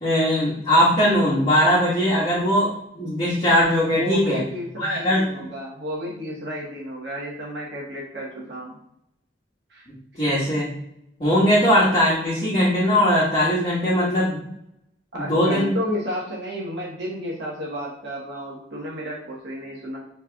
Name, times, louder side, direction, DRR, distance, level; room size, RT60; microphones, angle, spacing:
voice 1, 0.0-4.4 4.8-5.3 10.1-10.7 11.2-14.5 15.1-15.8, equal, 30° left, -11 dB, 1.5 m, -20 dB
voice 2, 3.9-8.8 9.7-9.8 15.1-20.0, equal, 70° right, -4 dB, 1.1 m, -32 dB
5.9 x 3.3 x 2.3 m, 0.78 s
head